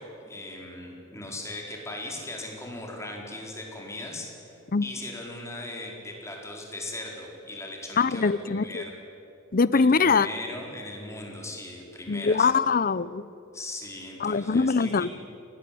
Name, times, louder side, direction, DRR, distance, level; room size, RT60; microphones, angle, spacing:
voice 1, 0.0-8.9 9.7-12.5 13.5-15.1, left 2 dB, 15° left, 0 dB, 4.4 m, -39 dB
voice 2, 8.0-8.8 9.5-10.3 12.1-13.2 14.2-15.1, left 4 dB, 45° left, 18 dB, 0.6 m, -23 dB
24.5 x 18.5 x 8.5 m, 3.0 s
head